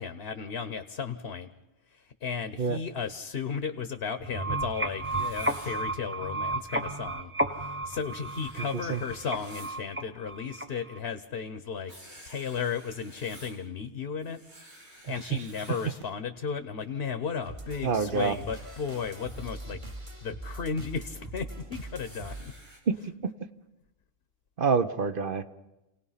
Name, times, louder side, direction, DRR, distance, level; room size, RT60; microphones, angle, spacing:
voice 1, 0.0-1.5 1.9-7.3 7.6-14.4 15.1-19.8 20.2-22.5, left 6 dB, 65° left, 10 dB, 1.1 m, -35 dB
sound 1, 4.2-11.0, right 2 dB, 10° right, 0.8 m, -33 dB
Writing, 5.0-5.8 8.0-9.8 11.9-13.6 14.2-16.1 18.0-19.5 22.0-22.8, equal, 75° right, 4.8 m, -52 dB
sound 2, 17.4-22.4, right 1 dB, 30° right, 1.4 m, -42 dB
voice 2, 17.8-18.3 22.9-23.0 23.2-23.3 24.6-25.4, right 5 dB, 55° right, 10 dB, 1.0 m, -26 dB
28.5 x 18.0 x 5.7 m, 0.96 s
omnidirectional pair, 1.1 m